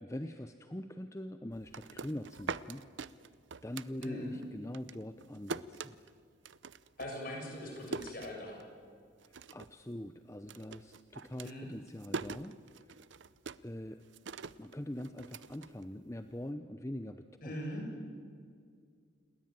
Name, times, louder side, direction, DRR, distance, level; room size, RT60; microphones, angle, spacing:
voice 1, 0.0-2.8 3.6-6.0 9.3-13.0 13.6-14.0 14.6-17.6, left 1 dB, 15° left, 9 dB, 0.7 m, -43 dB
sound 1, 1.5-4.5 4.7-8.9 9.2-9.8 10.1-16.3, right 4 dB, 65° right, 0.7 m, -44 dB
voice 2, 4.0-4.4 7.0-8.6 11.4-11.7 17.4-17.8, left 1 dB, 45° left, 0 dB, 6.9 m, -41 dB
28.5 x 20.0 x 9.0 m, 2.2 s
head